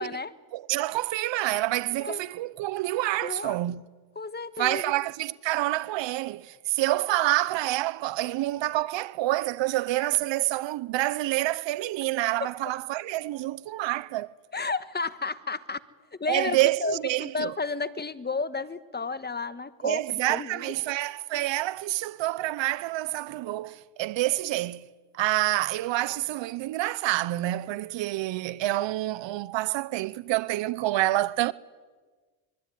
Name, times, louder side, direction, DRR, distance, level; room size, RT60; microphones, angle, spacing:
voice 1, 0.0-0.3 2.0-2.2 3.2-3.6 4.1-4.9 8.2-8.3 12.4-12.5 14.5-15.8 16.1-20.7, left 4 dB, 20° left, 1.5 m, -32 dB
voice 2, 0.5-3.9 4.6-14.3 16.3-17.5 19.8-24.9 25.1-31.5, right 16 dB, 65° right, 1.0 m, -27 dB
25.0 x 23.0 x 9.4 m
supercardioid pair, 85°, 48 cm